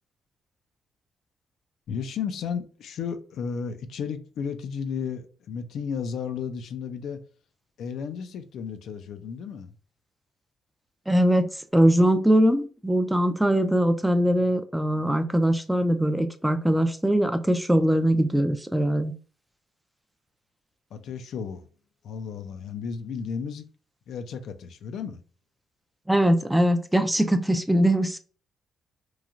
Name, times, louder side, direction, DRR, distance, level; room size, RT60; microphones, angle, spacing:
voice 1, 1.9-7.2 7.8-9.7 20.9-21.7 22.0-23.6 24.1-25.2, left 6 dB, 75° left, 0.4 m, -33 dB
voice 2, 11.1-19.1 26.1-28.2, right 1 dB, 5° right, 0.3 m, -22 dB
3.0 x 2.3 x 2.5 m
cardioid pair, 90°, 0 cm